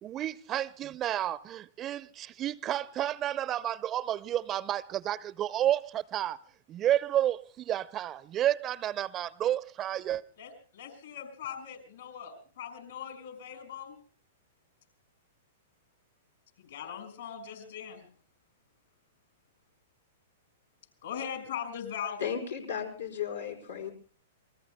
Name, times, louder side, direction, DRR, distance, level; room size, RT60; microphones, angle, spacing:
voice 1, 0.0-6.4 6.7-10.2, right 12 dB, 30° right, 0.7 m, -31 dB
voice 2, 10.4-14.0 16.6-18.1 21.0-22.2, left 8 dB, 70° left, 6.1 m, -40 dB
voice 3, 22.2-23.9, left 8 dB, 85° left, 4.5 m, -35 dB
28.0 x 21.0 x 2.2 m
figure-of-eight pair, 105°, 0 cm